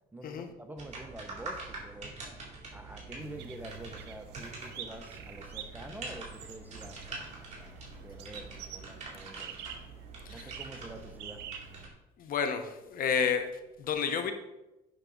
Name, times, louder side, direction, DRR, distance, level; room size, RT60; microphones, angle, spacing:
voice 1, 0.1-2.2 2.7-9.6 10.3-11.5, right 1 dB, 10° right, 6 dB, 0.8 m, -47 dB
sound 1, 0.8-11.9, right 3 dB, 45° right, 3.2 m, -45 dB
sound 2, 3.2-11.9, right 7 dB, 90° right, 0.9 m, -47 dB
voice 2, 12.2-13.5 13.8-14.3, left 6 dB, 55° left, 7 dB, 1.1 m, -30 dB
8.4 x 6.0 x 3.9 m, 0.96 s
cardioid pair, 110°, 17 cm